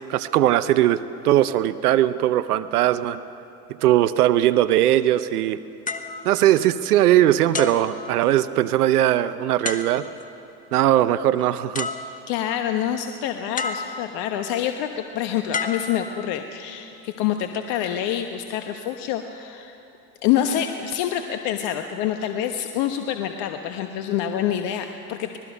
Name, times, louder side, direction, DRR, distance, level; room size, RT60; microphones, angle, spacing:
voice 1, 0.1-3.2 3.8-5.6 6.2-10.0 10.7-11.9, right 13 dB, 90° right, 14 dB, 0.7 m, -19 dB
sound 1, 5.9-7.1 7.5-8.7 9.6-10.3 11.4-11.5 11.7-12.6 13.6-14.4 15.5-16.6 17.3-17.6, left 4 dB, 20° left, 1.4 m, -32 dB
voice 2, 12.3-19.8 20.2-25.4, left 10 dB, 60° left, 6 dB, 1.2 m, -26 dB
26.0 x 19.5 x 5.4 m, 2.9 s
hypercardioid pair, 90°, 44 cm